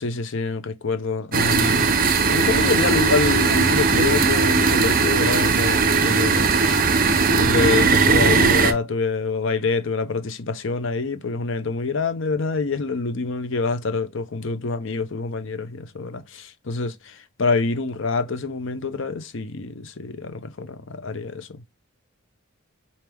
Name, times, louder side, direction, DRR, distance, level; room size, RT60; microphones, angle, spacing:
voice 1, 0.0-6.5 7.2-21.7, left 4 dB, 60° left, 0.7 m, -26 dB
sound 1, 1.3-8.7, right 4 dB, 40° right, 0.6 m, -18 dB
4.6 x 2.8 x 3.4 m
head